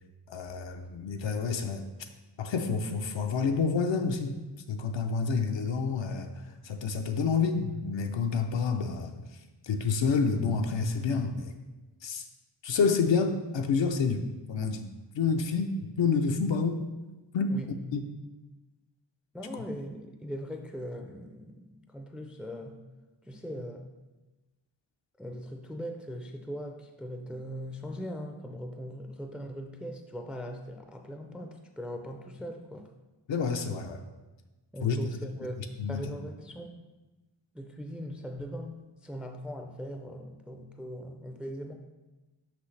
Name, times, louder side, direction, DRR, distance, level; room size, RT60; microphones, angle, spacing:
voice 1, 0.3-2.1 2.4-4.4 4.7-9.4 9.6-11.6 12.0-12.2 12.6-14.9 15.2-16.8 17.3-17.5 17.9-18.0 19.5-19.6 33.3-34.0 34.8-35.0 35.6-36.1, left 5 dB, 75° left, 5 dB, 0.6 m, -29 dB
voice 2, 19.3-22.8 23.2-23.9 25.2-32.9 34.7-36.8 37.5-41.7, equal, ahead, 4 dB, 0.4 m, -40 dB
5.9 x 5.5 x 3.2 m, 1.1 s
wide cardioid pair, 100°, 45 cm